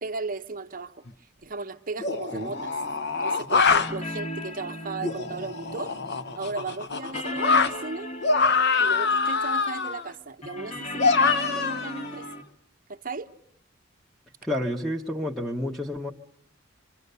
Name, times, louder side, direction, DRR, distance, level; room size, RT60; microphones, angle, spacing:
voice 1, 0.0-1.0 1.4-2.8 3.2-6.0 6.3-8.1 8.8-12.3 12.9-13.3, right 3 dB, 45° right, 0.9 m, -36 dB
sound 1, 1.1-1.2 2.0-3.9 5.0-7.7 8.2-10.1 11.0-12.3, left 4 dB, 55° left, 1.0 m, -24 dB
sound 2, 2.5-6.8 7.1-10.0 10.4-12.4, left 1 dB, 35° left, 1.3 m, -38 dB
voice 2, 14.4-16.1, left 1 dB, ahead, 1.0 m, -30 dB
26.0 x 25.5 x 6.8 m
head